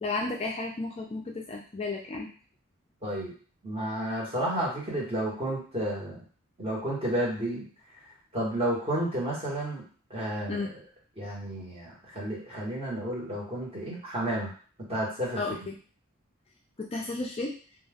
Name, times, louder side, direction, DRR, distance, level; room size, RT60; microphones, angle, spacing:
voice 1, 0.0-2.3 10.5-10.7 15.4-15.8 16.8-17.5, left 3 dB, 30° left, 0 dB, 0.3 m, -33 dB
voice 2, 3.0-3.3 3.6-6.2 6.6-7.6 8.3-9.8 10.1-10.6 11.2-14.5 14.8-15.4, right 1 dB, 30° right, -5 dB, 1.1 m, -31 dB
2.3 x 2.2 x 3.3 m, 0.41 s
head